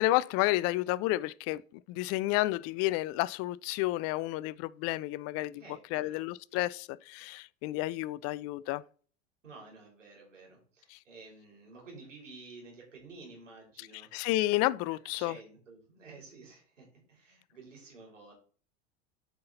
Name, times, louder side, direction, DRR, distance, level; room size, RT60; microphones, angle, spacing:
voice 1, 0.0-5.6 5.9-8.8 10.9-11.0 14.1-15.4, left 18 dB, 40° left, 0.4 m, -31 dB
voice 2, 5.6-6.2 9.4-14.1 15.2-18.3, right 3 dB, 85° right, 4.1 m, -51 dB
8.4 x 5.7 x 4.0 m
hypercardioid pair, 85°, 36 cm